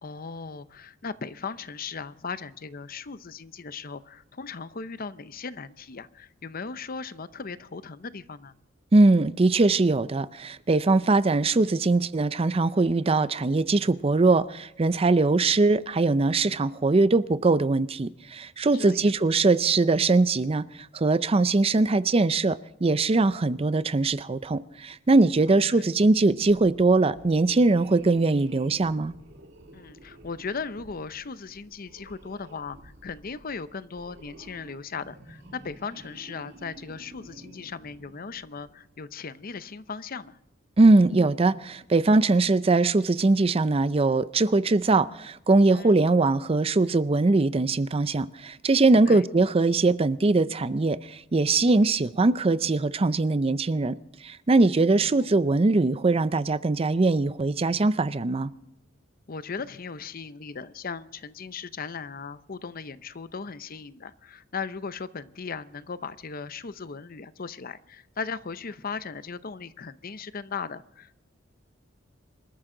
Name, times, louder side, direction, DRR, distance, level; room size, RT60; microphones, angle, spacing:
voice 1, 0.0-8.5 18.7-19.1 25.5-25.8 29.7-40.4 45.7-45.9 49.1-49.2 55.0-55.2 59.3-71.2, left 5 dB, 50° left, 0.7 m, -37 dB
voice 2, 8.9-20.7 20.9-29.1 40.8-53.9 54.2-58.5, right 3 dB, 30° right, 0.5 m, -21 dB
sound 1, 26.4-38.9, right 1 dB, 60° right, 2.4 m, -50 dB
26.5 x 13.5 x 3.8 m
head